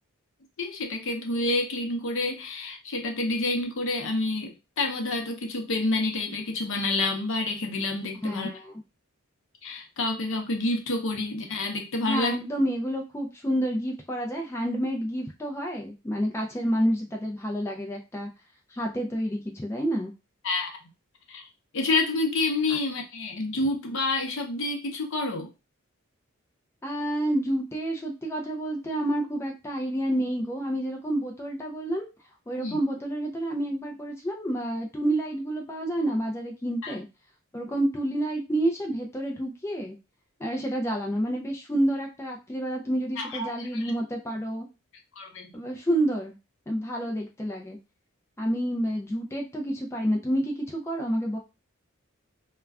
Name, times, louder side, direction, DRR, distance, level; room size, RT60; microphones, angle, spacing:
voice 1, 0.6-8.5 9.6-12.3 20.4-20.7 21.3-21.5 21.7-25.5 32.6-32.8 36.8-36.9 43.2-43.9 45.2-45.5, left 2 dB, 65° left, 3 dB, 0.6 m, -28 dB
voice 2, 8.2-8.7 12.1-18.3 18.7-20.1 26.8-32.1 32.5-37.1 37.5-40.0 40.4-44.7 45.5-46.4 46.7-47.8 48.4-51.4, right 1 dB, 15° left, 1 dB, 0.4 m, -29 dB
2.3 x 2.2 x 3.4 m, 0.27 s
head